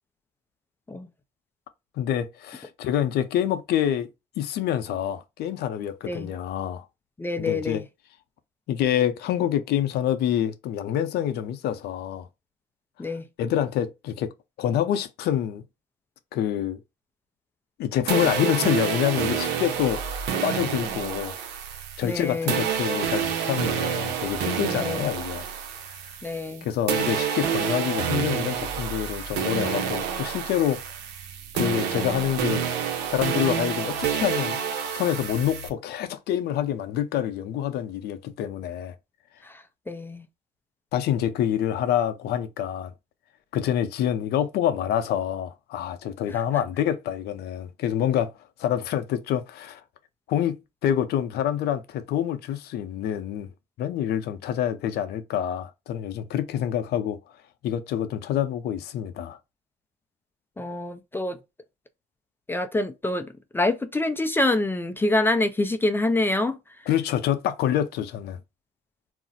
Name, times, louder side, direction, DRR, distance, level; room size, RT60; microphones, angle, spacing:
voice 1, 2.0-4.1 4.4-6.8 7.4-7.8 8.7-12.3 13.4-14.3 14.6-15.6 16.3-16.8 17.8-20.0 20.4-21.3 22.0-25.5 26.6-30.8 31.5-32.6 33.1-34.6 34.9-38.9 40.9-42.9 43.5-48.3 48.6-49.8 50.3-53.5 53.8-57.2 57.6-59.4 66.9-68.4, left 10 dB, 70° left, 0.5 m, -26 dB
voice 2, 7.2-7.9 13.0-13.2 22.0-22.7 24.7-25.1 26.2-26.7 39.4-40.3 46.3-46.4 60.6-61.4 62.5-66.9, left 2 dB, 15° left, 0.3 m, -26 dB
sound 1, 18.1-26.6 26.9-35.7, right 8 dB, 90° right, 0.6 m, -28 dB
2.5 x 2.0 x 3.9 m
cardioid pair, 110°, 17 cm